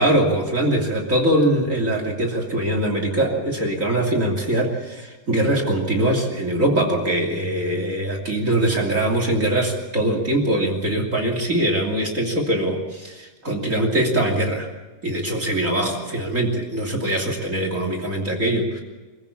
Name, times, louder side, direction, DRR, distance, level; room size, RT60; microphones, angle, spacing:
voice 1, 0.0-14.7 15.0-18.8, right 1 dB, 20° right, 2 dB, 2.6 m, -22 dB
24.5 x 15.5 x 8.6 m, 1.2 s
omnidirectional pair, 4.7 m